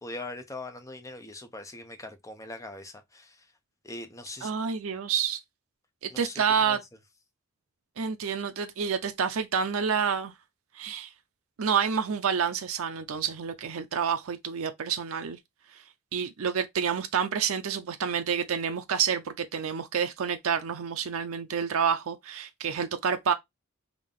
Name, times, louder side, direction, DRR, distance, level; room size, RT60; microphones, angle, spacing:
voice 1, 0.0-3.5 3.8-4.5 6.1-6.8, left 2 dB, 15° left, 0.6 m, -41 dB
voice 2, 4.4-5.4 6.0-6.8 8.0-10.3 10.8-11.1 11.6-15.4 16.1-23.3, right 7 dB, 70° right, 0.5 m, -28 dB
3.6 x 2.7 x 3.6 m
head